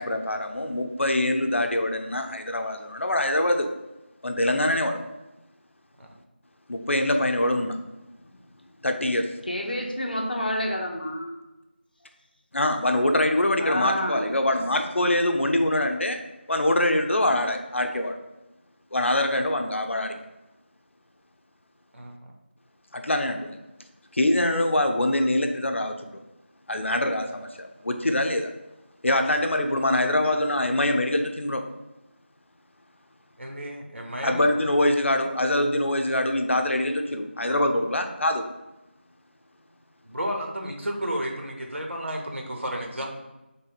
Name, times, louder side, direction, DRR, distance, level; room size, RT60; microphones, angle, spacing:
voice 1, 0.0-3.7 4.2-5.0 6.7-7.8 8.8-9.3 12.5-16.2 16.5-18.1 18.9-20.1 22.9-23.6 24.2-25.9 26.7-28.5 29.0-31.6 34.2-38.4, left 1 dB, 85° left, 5 dB, 0.6 m, -24 dB
voice 2, 9.5-11.4 13.6-14.2, equal, 50° left, 1 dB, 0.7 m, -28 dB
voice 3, 21.9-22.3 30.2-30.3 33.4-34.6 40.0-43.1, equal, 80° right, 1 dB, 0.9 m, -32 dB
3.4 x 2.5 x 4.2 m, 0.99 s
figure-of-eight pair, 180°, 6 cm